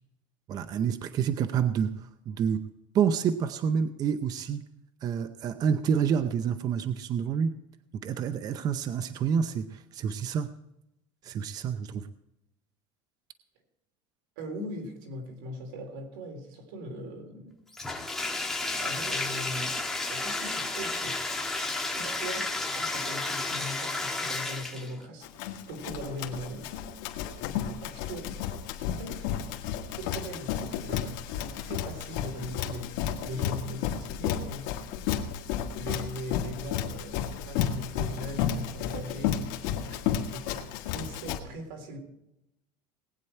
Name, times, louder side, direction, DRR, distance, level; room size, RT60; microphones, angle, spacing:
voice 1, 0.5-2.6 2.9-4.6 5.0-7.5 7.9-10.5 11.2-12.1, right 7 dB, 35° right, 0.6 m, -28 dB
voice 2, 14.4-17.6 18.8-19.8 20.1-21.2 22.0-25.3 25.7-26.7 27.8-28.4 28.9-29.3 30.0-32.9 33.2-34.7 35.7-40.5 40.9-42.0, equal, 90° right, 3.7 m, -40 dB
Bathtub (filling or washing), 17.7-25.0, left 2 dB, 5° left, 1.7 m, -32 dB
Run, 25.2-41.4, left 9 dB, 75° left, 1.7 m, -32 dB
19.0 x 9.5 x 4.4 m
cardioid pair, 145°, 11 cm